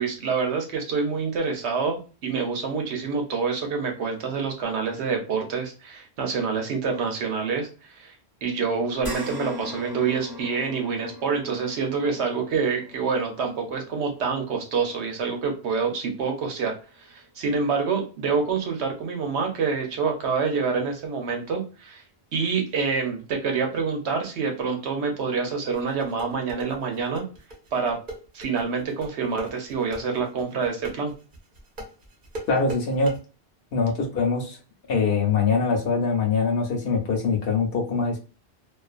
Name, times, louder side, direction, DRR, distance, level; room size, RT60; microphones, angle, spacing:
voice 1, 0.0-8.1 8.4-16.8 17.1-22.0 22.3-27.2 27.7-28.0 28.3-31.1, right 5 dB, 80° right, 2 dB, 1.0 m, -27 dB
sound 1, 9.0-17.6 18.1-18.2 19.6-19.7, left 1 dB, 25° right, 0.8 m, -41 dB
sound 2, 25.7-33.2, right 1 dB, 50° right, 0.8 m, -39 dB
voice 2, 32.5-33.1 33.7-34.6 34.9-38.2, left 4 dB, 65° left, 2 dB, 0.8 m, -23 dB
2.4 x 2.3 x 2.4 m, 0.34 s
omnidirectional pair, 1.1 m